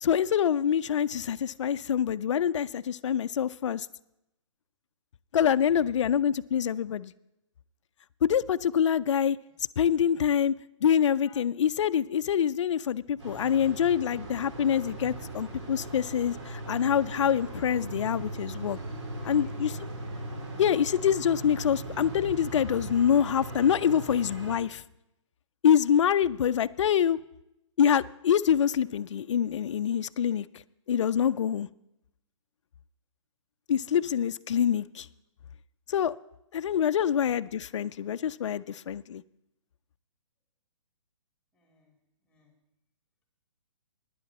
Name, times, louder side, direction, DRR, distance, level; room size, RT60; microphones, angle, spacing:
voice 1, 0.0-3.9 5.3-7.1 8.2-9.4 9.8-10.5 10.8-18.8 19.2-19.7 20.6-24.8 25.6-27.2 27.8-30.5 30.9-31.7 33.7-35.1 35.9-36.1 36.5-39.2, left 8 dB, 65° left, 0.4 m, -25 dB
voice 2, 5.6-6.1 9.4-9.5 19.2-20.2 33.8-34.1 37.1-37.4 41.5-41.9 42.3-42.5, left 2 dB, 5° left, 3.1 m, -59 dB
sound 1, 13.2-24.6, right 2 dB, 60° right, 3.3 m, -39 dB
16.5 x 10.0 x 4.1 m
hypercardioid pair, 150°, 16 cm